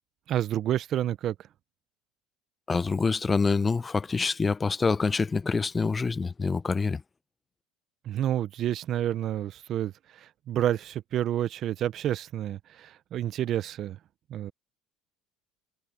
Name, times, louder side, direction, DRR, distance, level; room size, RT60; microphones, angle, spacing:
voice 1, 0.3-1.3 8.1-14.0 14.3-14.5, right 11 dB, 50° right, 0.6 m, -29 dB
voice 2, 2.7-7.0, left 4 dB, 20° left, 0.6 m, -26 dB
cardioid pair, 120°, 0 cm